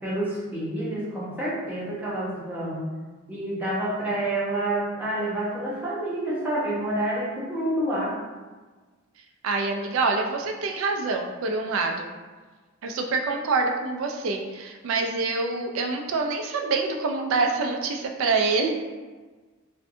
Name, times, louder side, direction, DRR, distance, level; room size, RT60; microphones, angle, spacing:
voice 1, 0.0-2.8 3.3-8.2, right 1 dB, 10° right, -8 dB, 0.6 m, -28 dB
voice 2, 9.4-12.1 12.8-18.7, right 3 dB, 75° right, 3 dB, 0.3 m, -26 dB
2.6 x 2.2 x 2.6 m, 1.3 s
head